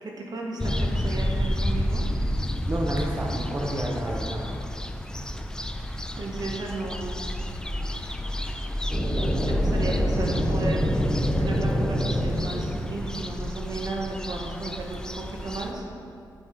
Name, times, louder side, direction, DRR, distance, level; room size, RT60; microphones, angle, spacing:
voice 1, 0.0-2.1 6.2-7.3 9.3-10.9 11.4-15.8, right 3 dB, 60° right, -1 dB, 1.1 m, -34 dB
sound 1, 0.6-15.7, equal, 10° left, 0.3 m, -30 dB
voice 2, 2.7-4.6 5.7-5.9 7.5-7.6 7.9-8.0 8.4-8.5, right 1 dB, 30° right, -2 dB, 0.7 m, -31 dB
sound 2, 8.9-13.7, equal, 5° right, 1.1 m, -26 dB
6.4 x 6.0 x 4.5 m, 2.3 s
wide cardioid pair, 140°, 8 cm